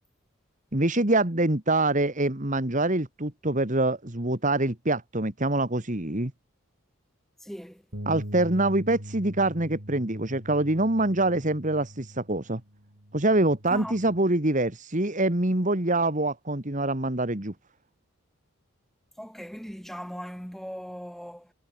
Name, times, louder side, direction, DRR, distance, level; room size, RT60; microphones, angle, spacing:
voice 1, 0.7-6.3 8.1-12.6 13.1-17.5, right 2 dB, 35° right, 2.0 m, -25 dB
voice 2, 7.4-7.8 13.7-14.3 19.2-21.5, equal, ahead, 4.3 m, -39 dB
Bass guitar, 7.9-14.2, equal, 65° right, 6.0 m, -42 dB
head